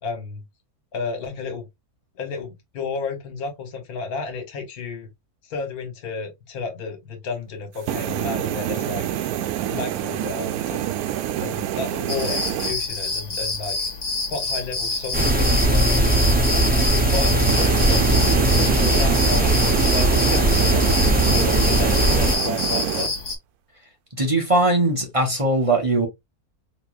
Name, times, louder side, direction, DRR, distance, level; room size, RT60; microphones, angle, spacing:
voice 1, 0.0-0.4 0.9-1.7 2.2-5.1 5.4-9.2 9.7-11.0 11.4-13.9 14.3-18.0 18.4-19.5 19.8-20.9 21.3-23.2, left 4 dB, 80° left, 1.6 m, -32 dB
sound 1, 7.7-12.7 17.3-23.1, right 11 dB, 80° right, 1.1 m, -27 dB
sound 2, 12.1-23.4, left 3 dB, 50° left, 1.3 m, -27 dB
sound 3, 15.1-22.4, right 1 dB, 10° right, 0.4 m, -19 dB
voice 2, 24.2-26.1, right 2 dB, 25° right, 0.8 m, -20 dB
3.9 x 2.9 x 2.4 m
omnidirectional pair, 1.6 m